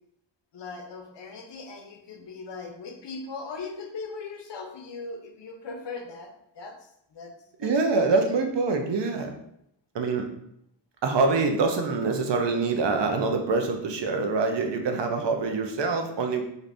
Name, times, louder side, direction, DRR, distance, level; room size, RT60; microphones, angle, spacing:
voice 1, 0.5-7.3 7.6-8.3, left 4 dB, 70° left, 4 dB, 0.6 m, -39 dB
voice 2, 7.6-9.3 9.9-10.3 11.0-16.4, right 3 dB, 70° right, 4 dB, 0.5 m, -25 dB
2.6 x 2.5 x 3.3 m, 0.75 s
wide cardioid pair, 110°, 45 cm